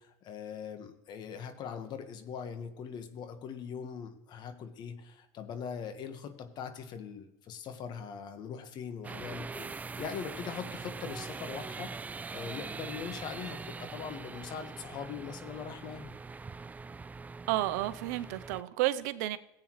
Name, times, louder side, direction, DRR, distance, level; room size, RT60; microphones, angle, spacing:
voice 1, 0.0-16.1, left 7 dB, 50° left, 9 dB, 1.4 m, -41 dB
sound 1, 9.0-18.6, right 4 dB, 15° right, 0.4 m, -42 dB
voice 2, 17.5-19.4, right 16 dB, 80° right, 14 dB, 0.6 m, -31 dB
16.5 x 8.4 x 3.1 m, 0.90 s
supercardioid pair, 95°, 9 cm